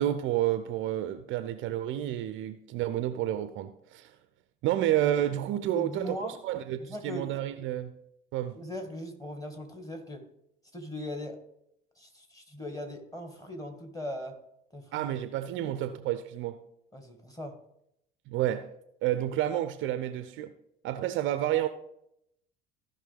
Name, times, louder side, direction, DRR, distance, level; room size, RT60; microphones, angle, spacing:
voice 1, 0.0-4.2 4.6-7.9 8.3-8.6 14.9-16.6 18.3-18.7 19.0-20.5 20.8-21.7, right 12 dB, 45° right, 0.5 m, -30 dB
voice 2, 5.7-6.4 6.8-7.3 8.5-10.3 10.7-11.4 12.0-14.4 14.7-15.1 15.6-15.8 16.9-17.6, left 1 dB, 10° left, 1.8 m, -39 dB
15.5 x 5.7 x 3.4 m
figure-of-eight pair, 65°, 29 cm